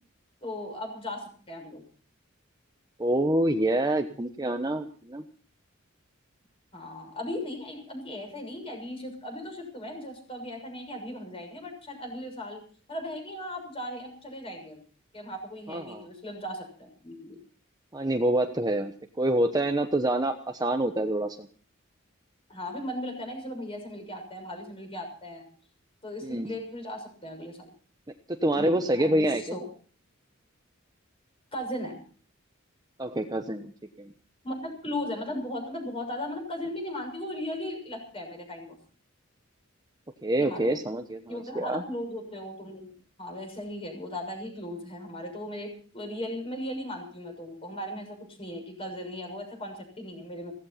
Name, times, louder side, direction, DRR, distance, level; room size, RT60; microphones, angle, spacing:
voice 1, 0.4-1.8 6.7-12.6 12.9-14.8 15.1-17.4 22.5-25.5 26.0-27.7 28.5-29.7 31.5-32.0 34.4-38.8 40.3-40.8 41.3-42.9 43.2-50.5, left 1 dB, 25° left, 3 dB, 6.5 m, -37 dB
voice 2, 3.0-5.2 15.7-16.1 17.9-21.5 26.2-26.6 28.3-29.6 33.0-33.7 34.0-34.1 40.2-41.8, right 1 dB, 20° right, 6 dB, 1.0 m, -27 dB
17.0 x 15.0 x 5.7 m, 0.43 s
head